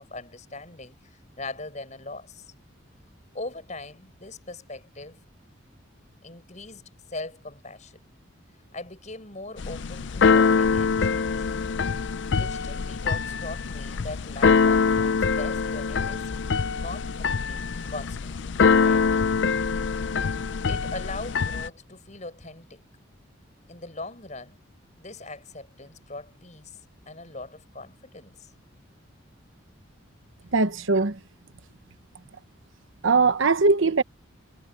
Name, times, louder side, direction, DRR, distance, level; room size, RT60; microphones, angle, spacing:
voice 1, 0.0-2.5 3.3-5.2 6.2-6.8 7.1-8.0 8.7-11.5 12.3-16.3 16.8-17.6 17.9-19.1 20.7-22.8 23.7-24.6 25.0-26.8 27.1-28.5, left 2 dB, 35° left, 6.5 m, -40 dB
Keyboard (musical), 9.6-21.7, left 5 dB, 60° left, 0.5 m, -24 dB
voice 2, 30.5-31.2 33.0-34.0, right 4 dB, 70° right, 1.0 m, -20 dB
head